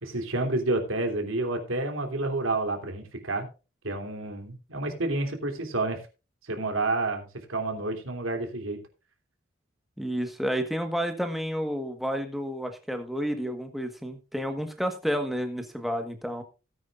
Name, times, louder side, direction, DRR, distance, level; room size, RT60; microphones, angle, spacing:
voice 1, 0.0-3.5 3.8-6.0 6.4-8.8, right 2 dB, 80° right, 4 dB, 3.0 m, -29 dB
voice 2, 10.0-16.4, equal, ahead, 5 dB, 1.4 m, -30 dB
17.5 x 9.5 x 2.5 m, 0.31 s
head